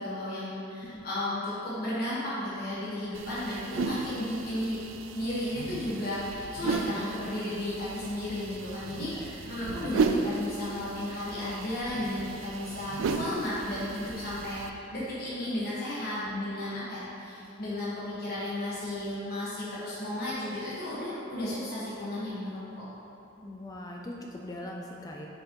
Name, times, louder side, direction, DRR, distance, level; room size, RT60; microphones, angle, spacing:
voice 1, 0.0-4.8 5.1-22.9, left 1 dB, 50° left, -9 dB, 1.3 m, -34 dB
sound 1, 3.1-14.7, right 4 dB, 85° right, 0.4 m, -35 dB
voice 2, 9.6-10.1 16.2-16.5 23.4-25.3, left 1 dB, 20° left, -1 dB, 0.4 m, -41 dB
7.4 x 5.4 x 3.0 m, 2.9 s
head